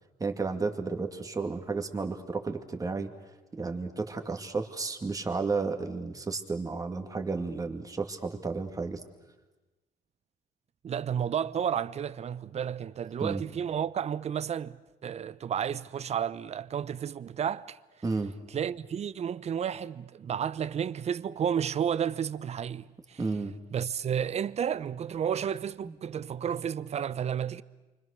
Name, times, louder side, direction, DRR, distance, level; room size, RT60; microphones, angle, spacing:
voice 1, 0.2-3.1 3.6-9.0 13.2-13.4 18.0-18.3 23.2-23.5 25.8-26.0, right 4 dB, 20° right, 2.4 m, -32 dB
voice 2, 10.8-17.8 18.5-23.2 23.7-27.6, right 8 dB, 40° right, 0.7 m, -32 dB
28.5 x 25.0 x 6.7 m
cardioid pair, 110°, 17 cm